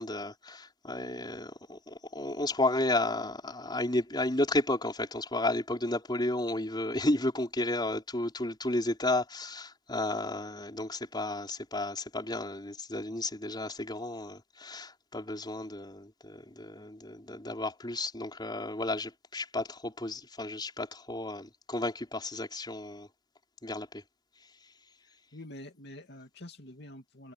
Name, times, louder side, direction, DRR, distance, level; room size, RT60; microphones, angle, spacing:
voice 1, 0.0-23.1 23.6-24.0, left 2 dB, 25° left, 5.1 m, -33 dB
voice 2, 25.3-27.3, left 1 dB, 60° left, 2.6 m, -47 dB
head